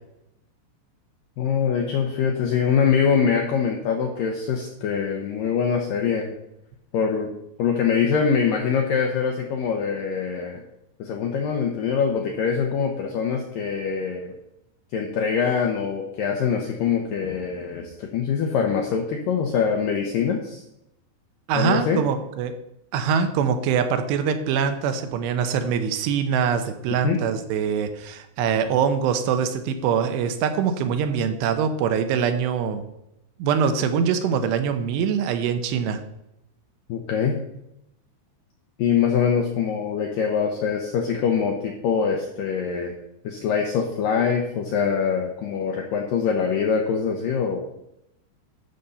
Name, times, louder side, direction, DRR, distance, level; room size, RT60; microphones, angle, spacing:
voice 1, 1.4-6.3 6.9-7.3 7.6-10.6 11.0-14.3 14.9-20.6 21.6-22.0 27.0-27.2 36.9-37.4 38.8-42.9 43.2-47.7, left 6 dB, 85° left, 2 dB, 2.0 m, -24 dB
voice 2, 21.5-22.5 22.9-32.8 33.4-36.0, right 7 dB, 80° right, 8 dB, 2.8 m, -23 dB
12.0 x 4.2 x 6.7 m, 0.83 s
omnidirectional pair, 5.1 m